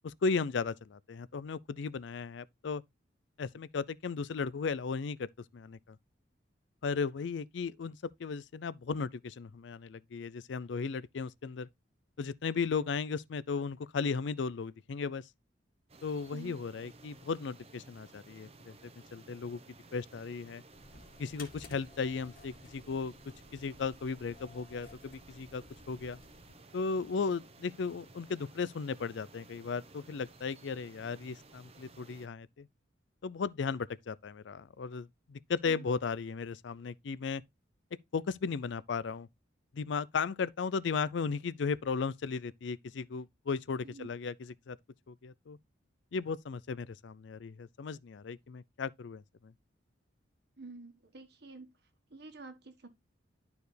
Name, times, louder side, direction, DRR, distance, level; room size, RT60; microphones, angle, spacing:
voice 1, 0.0-2.8 3.4-6.0 6.8-11.7 12.2-15.3 16.0-18.7 19.1-19.6 19.9-20.6 21.2-23.1 23.5-26.2 26.7-32.7 33.2-37.4 38.1-39.3 39.7-44.8 45.1-45.6 46.1-49.5, left 5 dB, 65° left, 0.4 m, -36 dB
sound 1, 15.9-32.3, right 3 dB, 30° right, 0.9 m, -56 dB
voice 2, 16.3-16.6 35.6-35.8 43.8-44.1 50.6-51.7 52.1-52.9, right 3 dB, 55° right, 1.4 m, -49 dB
sound 2, 20.7-26.6, left 3 dB, 50° left, 1.9 m, -55 dB
11.5 x 4.7 x 3.3 m
head